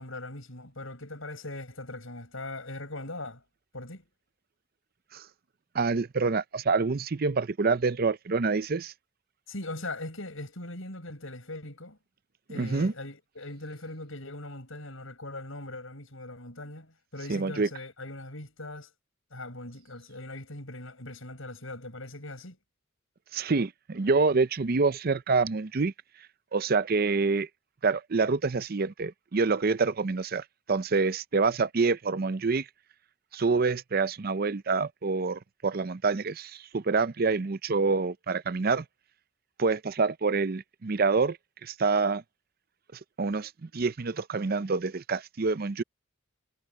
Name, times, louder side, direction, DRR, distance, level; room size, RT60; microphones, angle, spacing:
voice 1, 0.0-3.4 3.7-4.0 9.5-12.0 12.5-18.9 19.3-22.6, left 2 dB, 65° left, 8.0 m, -40 dB
voice 2, 5.7-8.9 12.5-12.9 17.3-17.7 23.3-25.9 26.5-27.5 27.8-32.7 33.3-38.8 39.6-41.4 41.6-42.2 42.9-45.8, right 4 dB, 45° right, 0.5 m, -27 dB
head